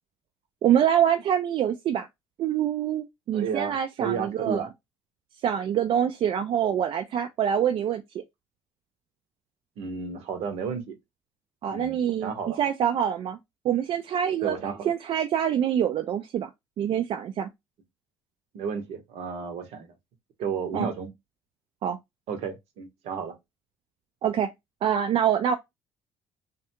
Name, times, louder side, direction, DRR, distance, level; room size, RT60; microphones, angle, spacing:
voice 1, 0.6-2.1 2.4-4.7 5.4-8.2 11.6-12.3 12.6-13.4 13.6-14.6 14.9-16.5 16.8-17.5 20.7-20.9 21.8-22.0 24.2-24.5 24.8-25.6, right 9 dB, 55° right, 0.4 m, -25 dB
voice 2, 3.3-4.7 9.8-11.0 11.7-12.6 14.4-14.9 18.5-19.9 20.4-21.1 22.3-23.3, right 6 dB, 70° right, 0.8 m, -32 dB
2.3 x 2.2 x 2.8 m
supercardioid pair, 65°, 11 cm